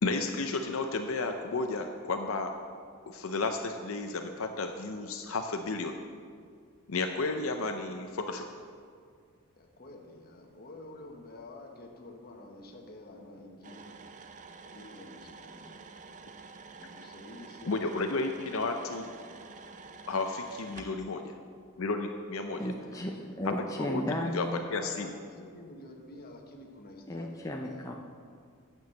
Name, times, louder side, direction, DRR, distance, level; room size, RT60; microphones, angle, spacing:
voice 1, 0.0-2.5 3.1-6.0 6.9-8.5 17.7-19.1 20.1-21.4 21.8-22.7 23.8-24.5 24.7-25.1, left 3 dB, 65° left, 5 dB, 0.6 m, -32 dB
voice 2, 9.6-14.0 14.7-15.8 16.8-17.8 22.7-23.4 24.8-27.9, left 2 dB, 45° left, 2 dB, 1.2 m, -49 dB
sound 1, 13.6-20.9, right 4 dB, 35° right, 0.5 m, -49 dB
voice 3, 22.6-24.6 27.1-28.0, left 1 dB, 15° left, 1 dB, 0.6 m, -34 dB
9.4 x 6.2 x 7.0 m, 2.1 s
head